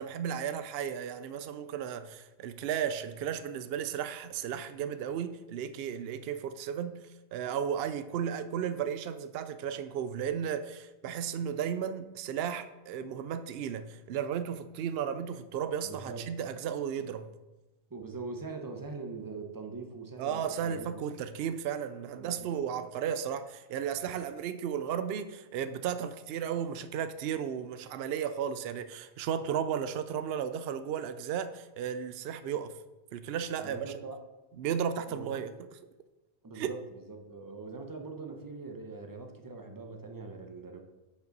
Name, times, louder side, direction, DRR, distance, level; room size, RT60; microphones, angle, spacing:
voice 1, 0.0-17.3 20.2-32.8 33.1-33.9 34.6-35.5 36.5-36.7, right 8 dB, 70° right, 0.8 m, -34 dB
voice 2, 15.8-16.3 17.9-21.0 22.1-22.5 33.6-34.2 35.1-35.5 36.4-36.8 37.1-40.8, right 3 dB, 20° right, 0.8 m, -42 dB
6.7 x 5.5 x 5.2 m
omnidirectional pair, 1.1 m